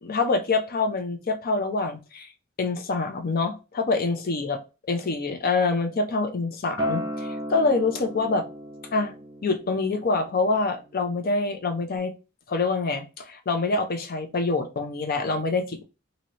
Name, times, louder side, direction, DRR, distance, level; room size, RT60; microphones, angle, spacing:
voice 1, 0.0-2.3 2.6-4.6 4.9-8.5 8.9-9.1 9.4-12.1 12.5-15.8, left 3 dB, 50° left, 6 dB, 0.5 m, -26 dB
Acoustic guitar, 6.8-12.0, equal, 20° right, 0.4 m, -35 dB
2.8 x 2.7 x 3.0 m, 0.30 s
head